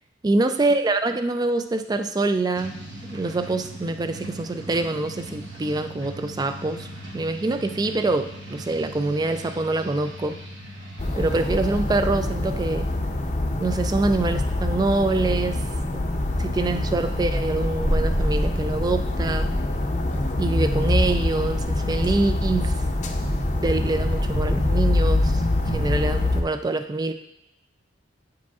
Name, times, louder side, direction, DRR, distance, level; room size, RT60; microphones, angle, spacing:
voice 1, 0.2-2.8 3.0-6.9 7.1-10.4 11.2-12.9 13.6-15.6 15.9-16.0 16.4-19.5 20.4-22.7 23.6-27.1, right 2 dB, 20° right, 8 dB, 0.3 m, -25 dB
sound 1, 2.5-11.8, right 1 dB, 65° right, 1.0 m, -39 dB
sound 2, 11.0-26.4, left 1 dB, 40° left, 0.6 m, -24 dB
9.1 x 4.8 x 2.4 m, 0.84 s
head